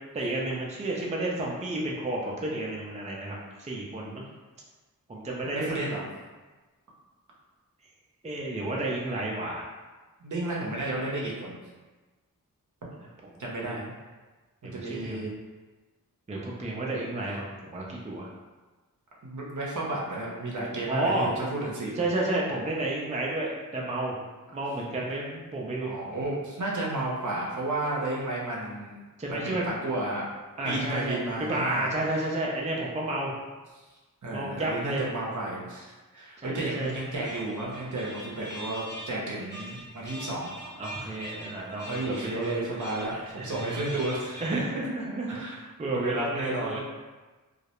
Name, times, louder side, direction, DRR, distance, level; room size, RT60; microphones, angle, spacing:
voice 1, 0.1-4.2 5.1-5.9 8.2-9.7 13.0-13.1 13.6-13.7 14.6-15.3 16.3-18.3 20.9-21.3 22.0-24.2 24.5-25.9 29.2-29.6 30.6-33.3 34.3-35.1 36.4-37.0 40.8-43.7 44.4-46.8, right 2 dB, 20° right, -3 dB, 0.4 m, -31 dB
voice 2, 5.4-6.0 10.2-11.6 13.4-13.9 14.6-15.3 19.2-21.9 25.8-28.9 29.3-30.3 30.6-31.9 34.2-35.9 36.1-40.8 41.9-44.6 45.3-45.6 45.9-46.8, right 2 dB, 60° right, -4 dB, 0.6 m, -32 dB
sound 1, 36.8-44.6, equal, 30° left, 0.8 m, -43 dB
2.3 x 2.0 x 2.9 m, 1.2 s
wide cardioid pair, 45°, 34 cm